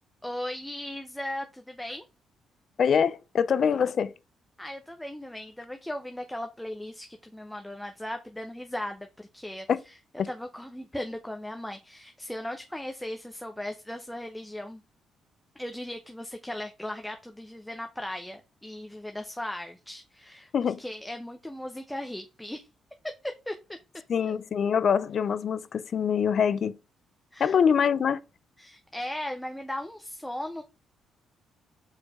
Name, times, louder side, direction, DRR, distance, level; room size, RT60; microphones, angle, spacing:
voice 1, 0.2-2.0 4.6-10.0 10.3-14.8 15.6-20.5 20.8-22.7 23.0-23.8 27.3-27.6 28.6-30.6, left 1 dB, 5° left, 0.7 m, -37 dB
voice 2, 2.8-4.1 9.7-9.8 20.5-20.8 24.1-26.7 27.4-28.2, left 7 dB, 55° left, 0.5 m, -24 dB
4.8 x 4.3 x 4.8 m
cardioid pair, 90°, 0 cm